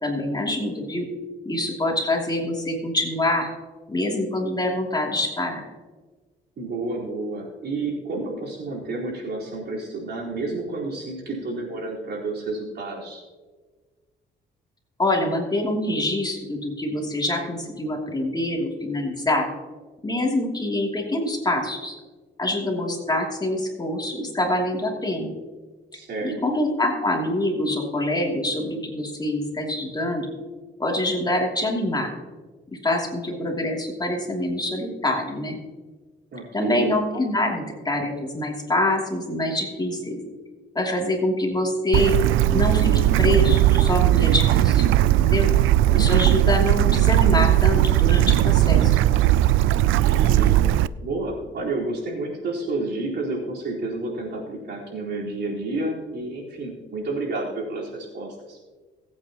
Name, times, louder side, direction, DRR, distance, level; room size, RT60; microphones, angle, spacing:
voice 1, 0.0-1.1 1.4-3.5 3.9-5.6 15.0-19.5 20.0-21.9 22.4-25.3 26.2-30.3 30.8-32.1 32.7-35.6 36.5-40.2 40.7-42.1 42.5-45.5 45.9-49.0, left 1 dB, 20° left, 0 dB, 2.8 m, -25 dB
voice 2, 6.6-13.2 25.9-26.4 36.3-36.9 49.9-50.6 51.0-58.6, right 2 dB, 60° right, -3 dB, 4.2 m, -30 dB
Bird / Stream, 41.9-50.9, right 14 dB, 85° right, 0.4 m, -18 dB
22.5 x 8.8 x 3.0 m, 1.4 s
cardioid pair, 90°, 20 cm